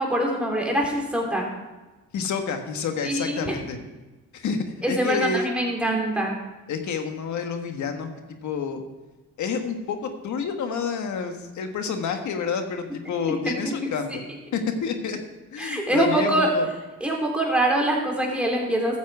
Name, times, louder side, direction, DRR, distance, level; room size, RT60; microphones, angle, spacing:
voice 1, 0.0-1.5 3.0-3.6 4.8-6.4 13.4-14.2 15.6-16.5 17.0-19.0, right 1 dB, 5° right, -1 dB, 3.2 m, -24 dB
voice 2, 2.1-3.8 4.3-5.4 6.7-8.1 8.4-8.8 9.4-14.2 14.5-15.2 15.5-16.7, left 5 dB, 70° left, 6 dB, 1.6 m, -29 dB
14.0 x 7.4 x 4.8 m, 1.2 s
cardioid pair, 90°, 30 cm